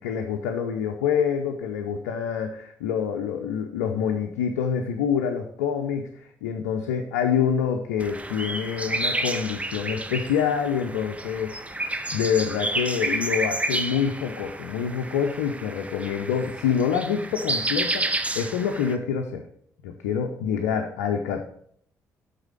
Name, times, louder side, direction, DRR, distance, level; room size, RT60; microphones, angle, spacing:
voice 1, 0.0-11.8 12.1-19.4 19.8-21.4, left 7 dB, 75° left, 4 dB, 0.6 m, -26 dB
sound 1, 8.0-18.9, right 2 dB, 15° right, 0.8 m, -30 dB
8.0 x 4.2 x 6.9 m, 0.63 s
figure-of-eight pair, 45°, 8 cm